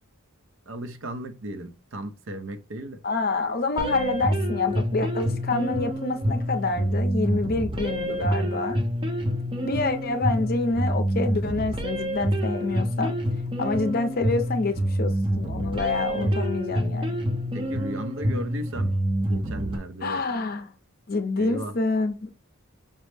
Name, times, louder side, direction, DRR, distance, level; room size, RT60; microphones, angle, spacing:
voice 1, 0.7-3.0 16.1-16.4 17.5-20.2 21.4-21.7, right 1 dB, 65° right, 0.6 m, -35 dB
voice 2, 3.0-8.8 9.6-13.1 13.6-17.1 20.0-20.7 21.1-22.3, left 3 dB, 45° left, 0.6 m, -27 dB
sound 1, 3.8-19.8, equal, 25° right, 0.5 m, -27 dB
5.3 x 2.1 x 3.2 m
head